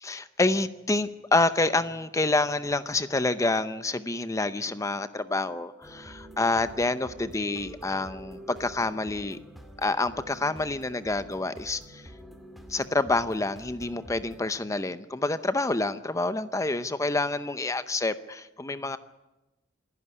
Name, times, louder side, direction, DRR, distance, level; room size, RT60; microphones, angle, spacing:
voice 1, 0.0-9.4 9.8-12.1 12.7-19.0, left 2 dB, 15° left, 12 dB, 0.6 m, -28 dB
sound 1, 5.8-14.4, right 1 dB, ahead, 2.2 m, -47 dB
27.0 x 11.0 x 9.9 m, 1.0 s
head